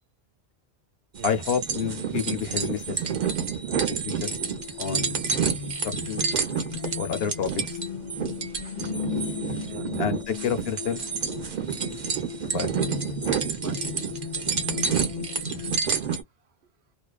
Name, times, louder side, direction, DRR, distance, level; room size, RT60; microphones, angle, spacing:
sound 1, 1.1-16.2, right 6 dB, 45° right, 0.8 m, -29 dB
voice 1, 1.2-3.2 3.7-4.4 4.8-5.2 5.8-6.3 6.9-7.8 10.0-11.0 12.5-12.7, left 7 dB, 70° left, 0.9 m, -29 dB
sound 2, 4.2-15.8, left 7 dB, 50° left, 0.4 m, -36 dB
voice 2, 9.7-10.2 13.2-14.0 14.3-14.8 15.8-16.5, right 6 dB, 75° right, 1.0 m, -48 dB
2.5 x 2.2 x 2.2 m
omnidirectional pair, 1.1 m